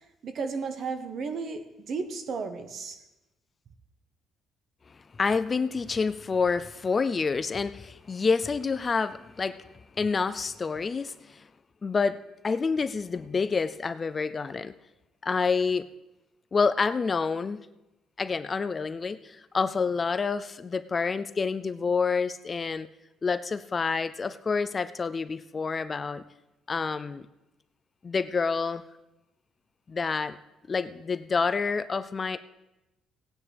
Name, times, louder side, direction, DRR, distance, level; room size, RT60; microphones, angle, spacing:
voice 1, 0.2-3.0, right 4 dB, 45° right, 8 dB, 1.1 m, -34 dB
voice 2, 5.2-9.7 10.0-11.4 11.8-14.7 15.2-15.9 16.5-17.6 18.2-22.9 23.2-26.2 26.7-27.2 28.0-28.8 29.9-30.4 30.7-32.4, left 5 dB, 25° left, 12 dB, 0.3 m, -28 dB
17.5 x 9.8 x 3.4 m, 0.96 s
cardioid pair, 145°, 0 cm